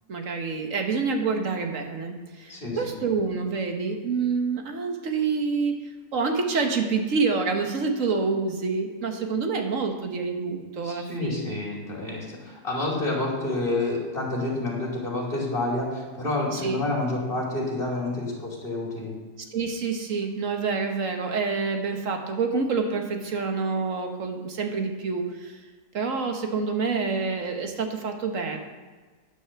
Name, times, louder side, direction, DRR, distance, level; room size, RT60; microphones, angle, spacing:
voice 1, 0.1-5.8 6.1-11.5 16.5-16.8 19.5-25.6 25.9-28.6, right 4 dB, 50° right, 4 dB, 1.5 m, -27 dB
voice 2, 2.5-2.9 10.8-19.2, left 2 dB, 30° left, -2 dB, 2.9 m, -29 dB
10.0 x 6.3 x 7.1 m, 1.4 s
omnidirectional pair, 1.8 m